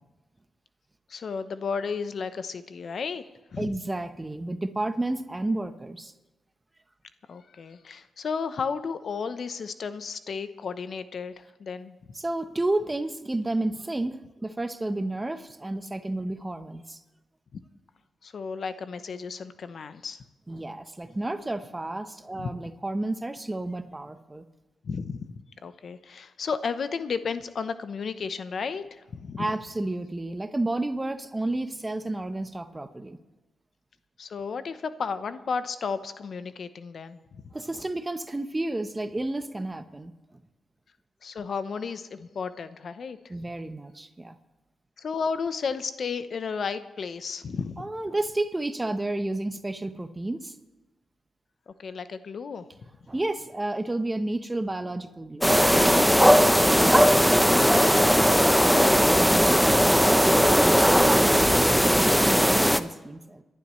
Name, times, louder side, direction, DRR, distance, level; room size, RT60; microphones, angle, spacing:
voice 1, 1.1-3.2 3.5-3.7 7.3-11.9 17.5-17.6 18.2-20.2 22.4-22.5 24.8-25.3 25.6-29.5 34.2-37.4 41.2-43.2 45.0-47.8 51.7-52.7 56.9-59.0 61.3-61.6, left 5 dB, 65° left, 12 dB, 0.8 m, -33 dB
voice 2, 3.6-6.1 12.1-17.0 20.5-24.4 29.4-33.2 37.5-40.1 43.3-44.4 47.8-50.6 53.1-55.5 59.2-63.4, right 2 dB, 25° right, 10 dB, 1.0 m, -31 dB
sound 1, 55.4-62.8, equal, ahead, 0.7 m, -19 dB
26.0 x 11.0 x 3.2 m, 1.1 s
cardioid pair, 50°, 0 cm